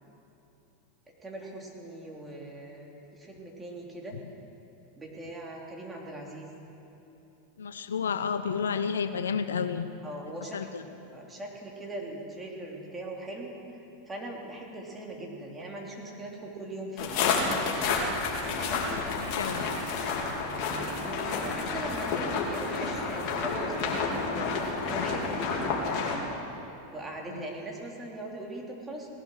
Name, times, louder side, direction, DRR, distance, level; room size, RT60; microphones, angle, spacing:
voice 1, 1.2-4.2 4.9-6.5 10.0-10.7 11.1-17.2 19.5-19.7 20.0-26.0 26.9-29.1, right 1 dB, 15° right, -1 dB, 3.3 m, -40 dB
voice 2, 7.6-9.9 10.5-10.8 18.6-18.9 19.2-19.6 27.3-27.5, left 6 dB, 80° left, 10 dB, 0.7 m, -31 dB
sound 1, 17.0-26.2, left 4 dB, 50° left, 2.9 m, -30 dB
18.5 x 11.5 x 6.6 m, 2.9 s
hypercardioid pair, 95°, 0 cm